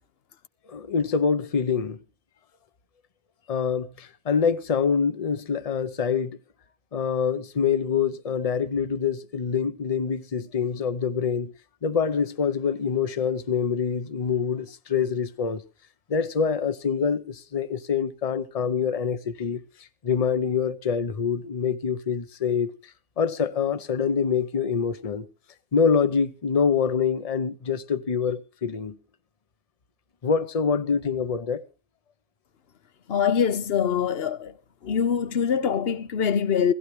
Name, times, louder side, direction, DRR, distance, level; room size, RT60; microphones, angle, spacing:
voice 1, 0.7-2.0 3.5-6.4 6.9-11.5 11.8-15.6 16.1-19.6 20.0-22.7 23.2-25.3 25.7-29.0 30.2-31.6, left 6 dB, 35° left, 0.8 m, -25 dB
voice 2, 33.1-34.5 34.8-36.7, left 7 dB, 60° left, 1.0 m, -24 dB
17.0 x 15.0 x 3.2 m
omnidirectional pair, 1.2 m